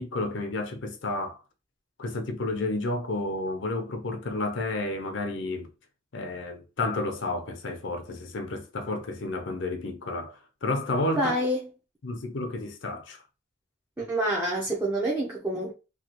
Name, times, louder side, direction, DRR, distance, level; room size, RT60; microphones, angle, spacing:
voice 1, 0.0-1.4 2.0-5.7 6.1-11.3 12.0-13.2, left 2 dB, 75° left, 0.6 m, -31 dB
voice 2, 11.2-11.7 14.0-15.7, right 1 dB, 10° right, 0.6 m, -27 dB
3.0 x 2.3 x 2.9 m
head